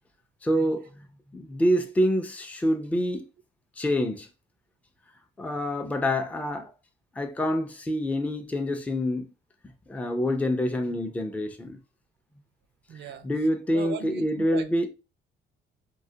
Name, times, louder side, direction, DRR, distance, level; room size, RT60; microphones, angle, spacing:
voice 1, 0.4-1.1 1.3-3.2 3.8-4.3 5.4-6.7 7.2-9.3 9.9-11.8 13.2-14.9, equal, 5° left, 0.4 m, -26 dB
voice 2, 12.9-13.3 13.7-14.9, right 8 dB, 60° right, 0.4 m, -38 dB
2.3 x 2.1 x 2.6 m
cardioid pair, 90°, 20 cm